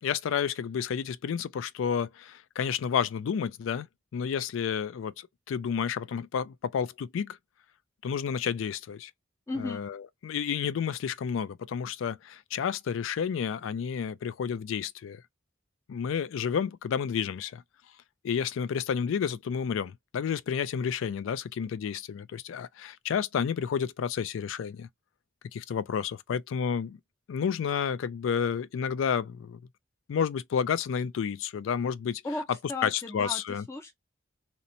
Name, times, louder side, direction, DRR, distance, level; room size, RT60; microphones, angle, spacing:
voice 1, 0.0-3.9 4.1-7.4 8.0-9.1 9.6-15.2 15.9-17.6 18.2-24.9 25.5-27.0 27.3-29.6 30.1-32.2 32.8-33.7, left 7 dB, 85° left, 0.3 m, -30 dB
voice 2, 9.5-9.8 32.2-33.9, left 2 dB, 15° left, 0.4 m, -35 dB
2.9 x 2.0 x 2.6 m
head